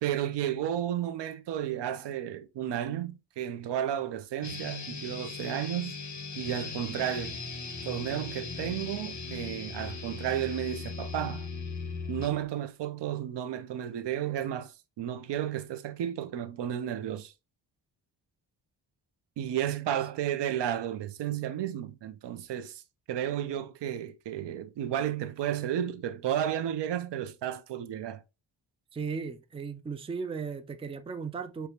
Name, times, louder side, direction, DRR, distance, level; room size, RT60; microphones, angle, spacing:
voice 1, 0.0-6.0 6.4-7.4 7.8-11.5 12.1-17.3 19.4-22.8 23.1-28.2, right 10 dB, 85° right, 0.6 m, -32 dB
sound 1, 4.4-12.4, left 4 dB, 45° left, 1.0 m, -38 dB
voice 2, 28.9-31.7, right 5 dB, 15° right, 0.3 m, -36 dB
6.5 x 2.2 x 2.8 m
wide cardioid pair, 115°, 40 cm